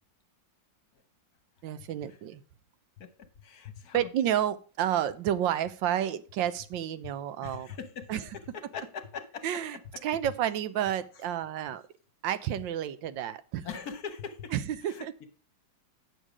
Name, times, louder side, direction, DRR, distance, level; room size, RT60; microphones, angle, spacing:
voice 1, 1.6-2.4 3.9-7.7 8.1-8.2 9.4-9.8 10.0-11.8 12.2-13.7 14.5-15.1, right 11 dB, 80° right, 14 dB, 1.3 m, -30 dB
voice 2, 3.4-4.1 7.0-7.1 7.4-8.2 8.5-9.6 13.6-14.5 14.8-15.3, left 6 dB, 60° left, 9 dB, 1.3 m, -41 dB
9.2 x 6.5 x 4.9 m, 0.37 s
omnidirectional pair, 2.1 m